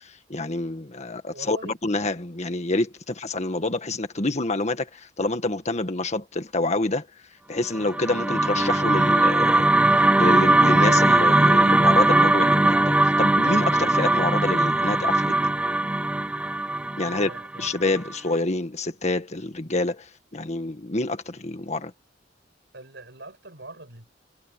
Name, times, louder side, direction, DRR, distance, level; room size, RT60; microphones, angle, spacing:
voice 1, 0.0-7.1 7.5-9.7 10.1-15.5 17.0-17.3 17.6-21.9, left 2 dB, 40° left, 1.7 m, -27 dB
voice 2, 1.3-1.8 17.0-17.7 22.7-24.1, right 2 dB, 65° right, 7.3 m, -43 dB
sound 1, 7.8-18.1, right 2 dB, 5° right, 0.3 m, -20 dB
head